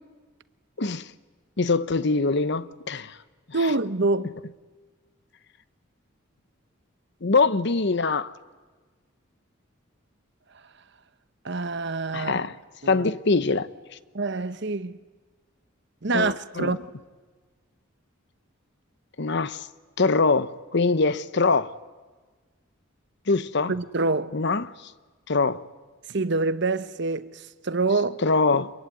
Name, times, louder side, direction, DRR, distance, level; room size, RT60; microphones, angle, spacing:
voice 1, 0.8-1.1 1.6-3.2 7.2-8.3 12.1-12.5 12.9-13.7 16.1-16.7 19.2-19.7 20.0-21.7 23.3-23.7 24.3-24.7 25.3-25.6 28.2-28.7, left 3 dB, 60° left, 0.9 m, -23 dB
voice 2, 3.5-4.3 8.0-8.2 11.4-12.5 12.8-13.1 14.1-15.0 16.0-16.9 23.7-24.4 26.1-28.2, right 3 dB, 60° right, 1.0 m, -26 dB
26.5 x 22.5 x 9.5 m
head